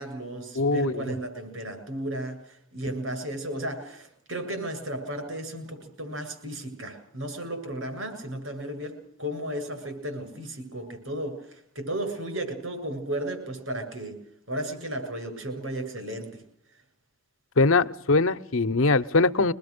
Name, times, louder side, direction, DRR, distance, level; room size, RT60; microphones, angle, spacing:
voice 1, 0.0-14.2 14.5-16.4, right 1 dB, 80° right, 7 dB, 7.4 m, -34 dB
voice 2, 0.5-1.0 17.6-19.5, left 3 dB, 90° left, 10 dB, 0.9 m, -22 dB
24.0 x 21.0 x 6.7 m, 0.70 s
head